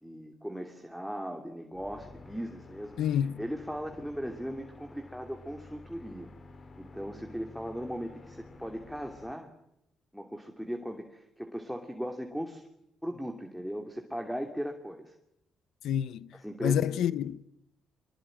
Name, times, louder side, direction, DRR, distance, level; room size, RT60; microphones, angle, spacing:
voice 1, 0.0-3.0 3.4-6.3 6.8-9.5 10.1-12.7 13.0-15.1 16.4-17.1, equal, ahead, 2.9 m, -38 dB
sound 1, 1.7-9.3, left 2 dB, 40° left, 3.8 m, -51 dB
voice 2, 3.0-3.4 15.8-16.3 16.6-17.5, left 9 dB, 80° left, 1.0 m, -28 dB
24.5 x 22.5 x 9.1 m
cardioid pair, 90°, 0 cm